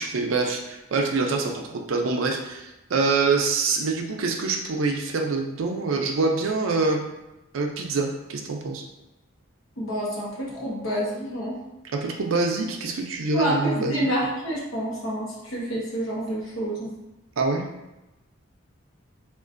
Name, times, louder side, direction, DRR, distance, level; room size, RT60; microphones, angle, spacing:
voice 1, 0.0-7.0 7.5-8.8 11.8-14.1 17.4-17.7, right 3 dB, 85° right, 3 dB, 0.5 m, -25 dB
voice 2, 9.8-11.5 13.3-16.9, equal, 85° left, -4 dB, 1.0 m, -28 dB
3.7 x 2.4 x 2.5 m, 0.97 s
head